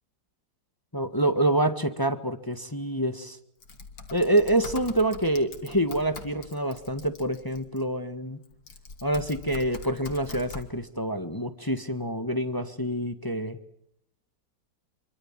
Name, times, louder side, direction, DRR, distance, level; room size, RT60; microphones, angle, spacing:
voice 1, 0.9-3.4 4.1-8.4 9.0-13.6, right 1 dB, 10° left, 10 dB, 1.5 m, -27 dB
Typing, 3.6-7.8 8.5-10.7, left 4 dB, 80° left, 3.4 m, -43 dB
27.0 x 24.5 x 7.5 m, 0.74 s
omnidirectional pair, 2.0 m